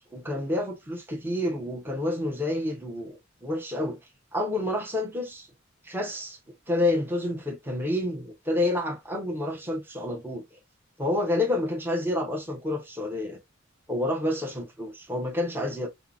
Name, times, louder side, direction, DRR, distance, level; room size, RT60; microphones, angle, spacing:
voice 1, 0.1-4.0 4.3-5.5 5.8-6.4 6.7-10.6 11.0-13.4 13.9-15.9, left 1 dB, 10° right, 0.6 m, -29 dB
3.6 x 2.0 x 2.3 m
head